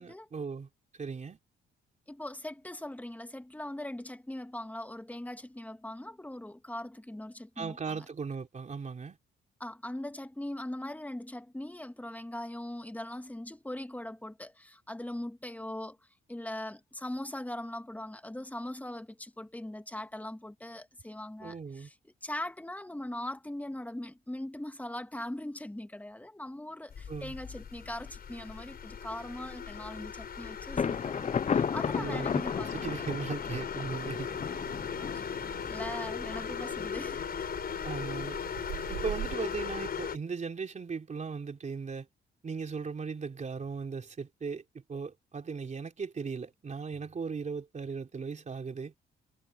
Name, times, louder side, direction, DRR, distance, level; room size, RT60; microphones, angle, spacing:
voice 1, 0.0-1.4 7.6-9.2 21.4-21.9 27.1-27.4 31.9-34.3 37.8-38.4 38.9-42.1 42.4-44.6 44.9-48.9, right 5 dB, 35° right, 3.4 m, -37 dB
voice 2, 2.1-8.0 9.6-16.0 16.3-21.9 22.2-33.0 35.0-35.3 35.7-37.4, left 1 dB, 10° left, 2.2 m, -40 dB
sound 1, 26.9-40.2, left 7 dB, 50° left, 4.8 m, -38 dB
Thunder, 30.8-36.4, left 7 dB, 35° left, 0.7 m, -33 dB
sound 2, 33.9-39.4, right 12 dB, 80° right, 5.5 m, -44 dB
cardioid pair, 90°, 20 cm